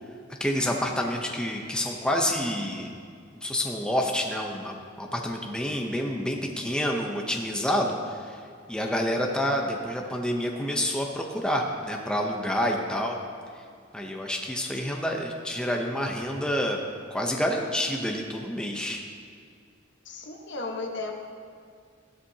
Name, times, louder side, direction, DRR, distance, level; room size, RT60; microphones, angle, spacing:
voice 1, 0.4-2.9 3.3-8.4 8.7-13.2 13.9-16.8 17.1-19.0, equal, 5° left, 0 dB, 0.8 m, -28 dB
voice 2, 20.0-21.1, left 3 dB, 60° left, 2 dB, 1.4 m, -34 dB
15.5 x 12.5 x 2.9 m, 2.2 s
head